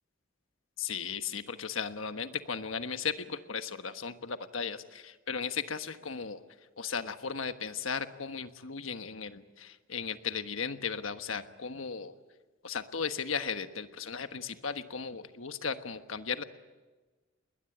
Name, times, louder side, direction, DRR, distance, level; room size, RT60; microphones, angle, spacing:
voice 1, 0.8-6.4 6.8-12.1 12.6-16.4, left 6 dB, 75° left, 9 dB, 1.3 m, -36 dB
21.0 x 20.5 x 9.9 m, 1.3 s
head